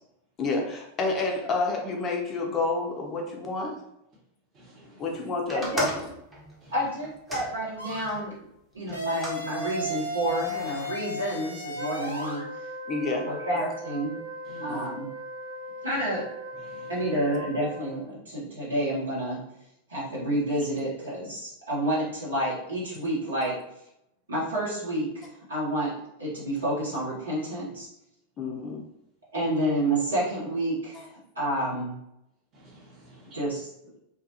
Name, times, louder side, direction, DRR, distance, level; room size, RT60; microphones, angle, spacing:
voice 1, 0.4-3.8 5.0-5.9 12.9-13.3 14.7-14.9 28.4-28.9, left 3 dB, 25° left, 1 dB, 0.5 m, -29 dB
voice 2, 4.5-5.1 6.6-6.7 14.4-14.9 16.6-17.1 32.5-33.4, equal, 30° right, -3 dB, 1.0 m, -46 dB
sound 1, 5.5-8.2 8.9-9.4 10.2-10.9, equal, 10° right, 0.7 m, -37 dB
voice 3, 5.5-5.9 6.7-8.3 8.7-12.5 13.3-14.1 14.6-15.1 15.8-16.2 16.9-19.4 19.9-23.6 24.3-25.9 26.2-27.9 29.3-31.1 31.3-32.0 33.3-33.7, right 1 dB, 70° right, -6 dB, 1.1 m, -29 dB
sound 2, 7.8-8.1 8.9-12.4, equal, 90° left, 0.5 m, -34 dB
Wind instrument woodwind instrument, 11.7-18.1, right 1 dB, 55° right, 0.6 m, -39 dB
2.4 x 2.3 x 2.7 m, 0.82 s
figure-of-eight pair, 90°, 0 cm